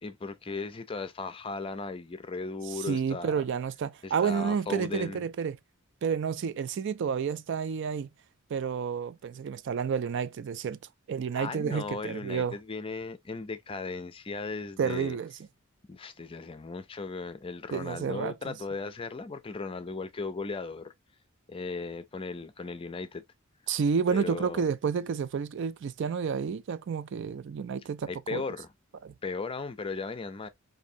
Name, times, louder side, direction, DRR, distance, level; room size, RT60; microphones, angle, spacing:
voice 1, 0.0-3.3 4.0-5.2 11.3-15.2 15.9-20.9 21.5-23.2 24.1-24.7 28.1-28.7 29.2-30.5, left 3 dB, 25° left, 0.4 m, -37 dB
voice 2, 2.9-5.6 6.0-8.1 8.5-10.8 11.1-12.6 14.8-15.3 17.7-18.6 23.7-28.4 29.0-29.1, right 6 dB, 60° right, 0.3 m, -30 dB
5.1 x 2.7 x 2.6 m
head